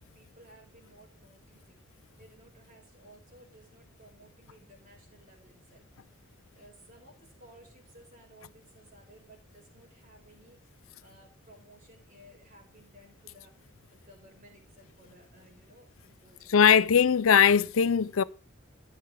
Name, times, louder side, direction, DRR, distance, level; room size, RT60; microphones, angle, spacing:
voice 1, 0.1-1.8 2.2-5.8 6.5-10.6 11.0-16.7, right 1 dB, 40° right, 4.9 m, -57 dB
voice 2, 16.5-18.2, left 7 dB, 80° left, 0.5 m, -20 dB
14.5 x 8.2 x 3.4 m
head